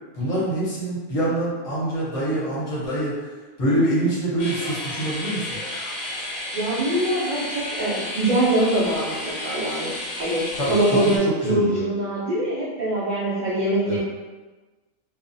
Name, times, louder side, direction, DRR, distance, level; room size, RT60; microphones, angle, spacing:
voice 1, 0.1-3.3 3.6-5.9 10.6-11.9 13.9-14.0, right 1 dB, 30° left, -8 dB, 0.7 m, -25 dB
sound 1, 4.4-11.2, left 1 dB, 90° left, 1.0 m, -32 dB
voice 2, 6.5-14.0, right 1 dB, 90° right, -8 dB, 0.4 m, -23 dB
2.4 x 2.0 x 2.6 m, 1.2 s
omnidirectional pair, 1.4 m